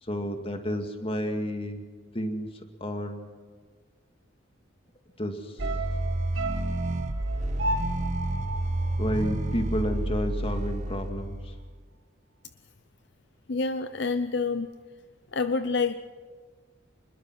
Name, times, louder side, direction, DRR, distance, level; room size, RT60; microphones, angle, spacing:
voice 1, 0.0-1.8 2.1-3.3 5.2-5.6 9.0-11.5, equal, 30° left, 5 dB, 2.1 m, -31 dB
sound 1, 5.6-11.8, right 1 dB, 35° right, 0.9 m, -30 dB
sound 2, 5.6-10.0 10.3-10.4, right 2 dB, 75° right, 2.0 m, -35 dB
voice 2, 13.5-14.7 15.3-15.9, left 4 dB, 60° left, 11 dB, 0.7 m, -27 dB
25.5 x 21.0 x 6.0 m, 1.5 s
head